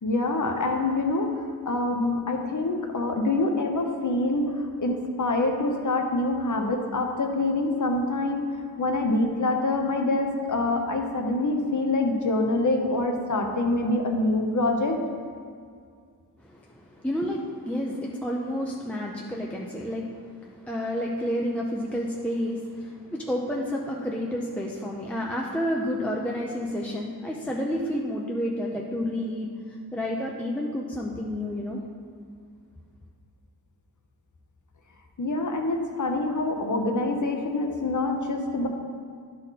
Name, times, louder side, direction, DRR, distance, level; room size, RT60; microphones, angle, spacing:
voice 1, 0.0-8.5 8.8-15.0 35.2-38.7, left 2 dB, 50° left, 3 dB, 0.9 m, -25 dB
voice 2, 16.4-31.8, equal, 5° left, -2 dB, 0.6 m, -30 dB
11.0 x 4.3 x 4.1 m, 2.2 s
wide cardioid pair, 110°, 38 cm